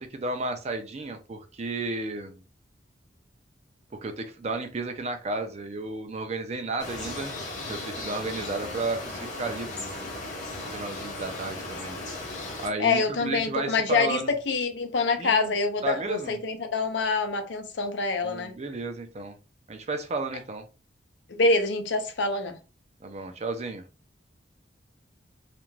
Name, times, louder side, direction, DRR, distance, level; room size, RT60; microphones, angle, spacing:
voice 1, 0.0-2.4 4.0-10.1 10.7-12.0 12.6-14.3 15.2-15.5 15.8-16.4 18.2-19.3 19.7-20.6 23.0-23.8, right 3 dB, 35° right, 0.5 m, -33 dB
sound 1, 6.8-12.7, left 2 dB, 40° left, 0.9 m, -36 dB
voice 2, 12.8-18.5 21.3-22.6, left 3 dB, 80° left, 0.6 m, -26 dB
2.5 x 2.2 x 3.1 m
head